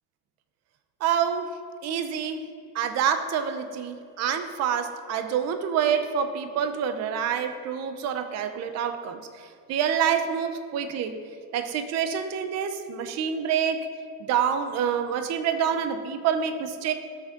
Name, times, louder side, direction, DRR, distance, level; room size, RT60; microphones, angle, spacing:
voice 1, 1.0-1.6 1.8-2.5 2.7-11.2 11.5-13.9 14.3-16.9, right 8 dB, 30° right, 8 dB, 0.8 m, -27 dB
18.0 x 6.5 x 3.8 m, 2.3 s
supercardioid pair, 145°, 50 cm